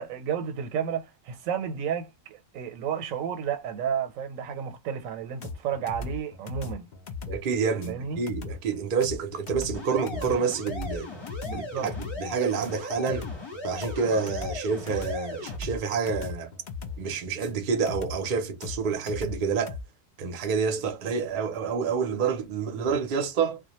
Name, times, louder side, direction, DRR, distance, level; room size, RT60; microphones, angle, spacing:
voice 1, 0.0-6.9 7.9-8.2 11.4-11.9, right 8 dB, 85° right, 1.0 m, -32 dB
sound 1, 5.4-19.8, left 4 dB, 80° left, 0.4 m, -38 dB
voice 2, 7.3-11.1 11.5-13.3 13.6-16.5 17.0-19.8 20.2-23.6, right 5 dB, 50° right, 0.6 m, -28 dB
sound 2, 9.7-15.6, left 3 dB, 25° left, 0.8 m, -38 dB
2.3 x 2.1 x 2.8 m
omnidirectional pair, 1.4 m